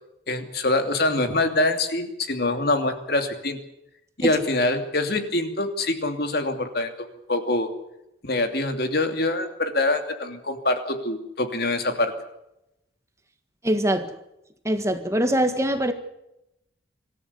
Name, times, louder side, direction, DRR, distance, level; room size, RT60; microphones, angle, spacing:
voice 1, 0.3-3.6 4.2-7.7 8.2-12.1, left 2 dB, 55° left, 7 dB, 2.8 m, -24 dB
voice 2, 13.6-14.1 14.6-15.9, right 1 dB, 15° right, 7 dB, 1.6 m, -23 dB
26.0 x 14.0 x 8.3 m, 0.85 s
head